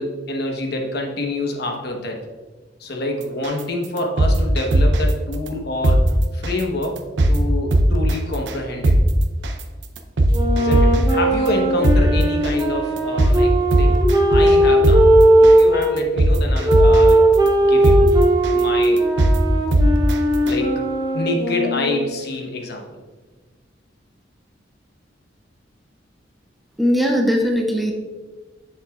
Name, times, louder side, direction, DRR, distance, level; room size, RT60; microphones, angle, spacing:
voice 1, 0.0-2.2 2.8-6.0 6.3-7.0 7.3-8.9 10.5-14.0 14.3-17.3 17.7-18.2 18.5-19.1 20.4-20.8 21.1-22.8, left 2 dB, 60° left, 2 dB, 1.1 m, -27 dB
sound 1, 3.4-3.6 4.0-5.1 5.5-5.6 5.8-6.0 6.4-6.6 7.0-7.4 7.7-8.1 8.5-8.6 8.8-9.0 9.4-9.6 10.0-11.1 11.5-11.6 11.8-12.0 12.4-12.6 13.0-13.4 13.7-14.6 14.8-15.0 15.4-15.6 16.0-17.1 17.5-17.6 17.8-18.0 18.4-18.6 19.0-19.4 19.7-20.1 20.5-20.6, right 1 dB, 75° right, 0.6 m, -16 dB
sound 2, 10.3-15.9 16.6-22.2, right 1 dB, 20° right, 0.9 m, -17 dB
voice 2, 26.8-27.9, equal, ahead, 1 dB, 0.5 m, -19 dB
7.8 x 6.7 x 2.4 m, 1.3 s
head